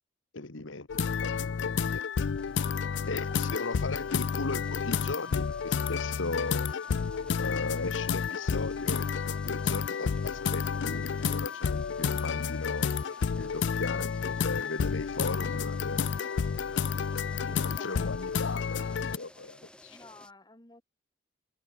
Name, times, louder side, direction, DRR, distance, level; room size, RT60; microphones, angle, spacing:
voice 1, 0.3-0.9 1.2-2.0 3.1-6.7 7.4-12.9 13.4-16.1 17.6-20.0, left 3 dB, 90° left, 1.6 m, -37 dB
sound 1, 0.9-19.2, left 6 dB, 65° left, 0.4 m, -30 dB
sound 2, 2.3-20.3, left 1 dB, 5° left, 5.1 m, -54 dB
voice 2, 17.4-19.0 19.9-20.8, left 2 dB, 20° left, 2.5 m, -53 dB
open air
head